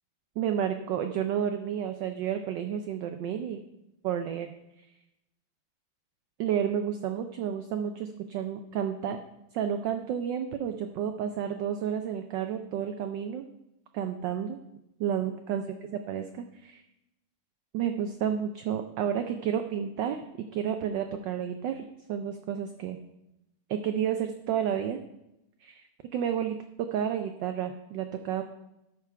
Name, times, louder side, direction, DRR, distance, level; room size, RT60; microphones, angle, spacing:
voice 1, 0.4-3.6 4.0-4.5 6.4-9.2 9.5-13.5 13.9-14.6 15.0-15.8 16.1-16.8 17.7-20.2 20.5-23.0 23.7-25.0 25.6-25.8 26.1-28.4, right 9 dB, 70° right, 7 dB, 1.1 m, -31 dB
12.5 x 4.7 x 5.6 m, 0.89 s
omnidirectional pair, 2.4 m